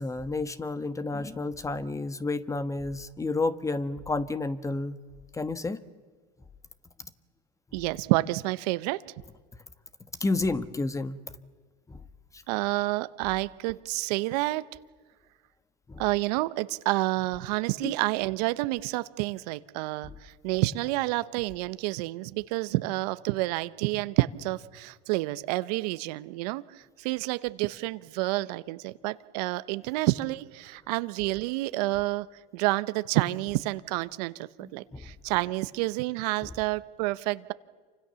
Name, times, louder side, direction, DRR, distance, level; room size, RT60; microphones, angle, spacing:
voice 1, 0.0-5.0 5.3-5.8 10.2-11.2 11.9-12.0 15.9-16.0 17.8-17.9 20.0-20.1 34.6-35.1, left 3 dB, 15° left, 13 dB, 1.4 m, -31 dB
voice 2, 7.7-9.0 12.5-14.6 16.0-32.3 32.5-37.5, right 20 dB, 70° right, 15 dB, 1.0 m, -29 dB
28.5 x 25.0 x 7.0 m, 1.5 s
supercardioid pair, 100°, 21 cm